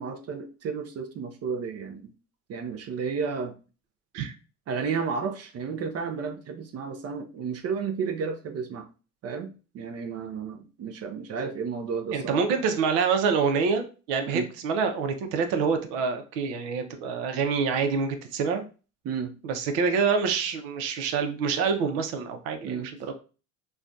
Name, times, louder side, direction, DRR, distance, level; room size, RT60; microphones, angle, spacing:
voice 1, 0.0-2.1 2.5-3.5 4.7-8.9 9.2-12.4 14.3-14.5 19.0-19.3 22.6-22.9, right 5 dB, 40° right, 0.5 m, -32 dB
voice 2, 12.1-18.6 19.4-23.1, right 5 dB, 80° right, 0.7 m, -26 dB
3.2 x 2.2 x 2.5 m
supercardioid pair, 90°, 39 cm